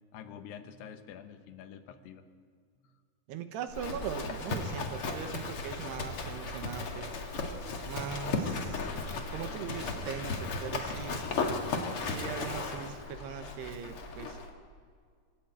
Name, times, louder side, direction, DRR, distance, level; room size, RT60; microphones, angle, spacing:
voice 1, 0.1-2.3 2.8-3.0, left 8 dB, 85° left, 8 dB, 3.2 m, -47 dB
voice 2, 3.3-7.1 7.9-8.9 9.3-11.3 12.0-14.4, right 8 dB, 90° right, 8 dB, 3.3 m, -40 dB
Livestock farm animals working animals, 3.7-14.5, left 3 dB, 45° left, 2.1 m, -35 dB
26.0 x 13.5 x 9.1 m, 2.1 s
omnidirectional pair, 4.7 m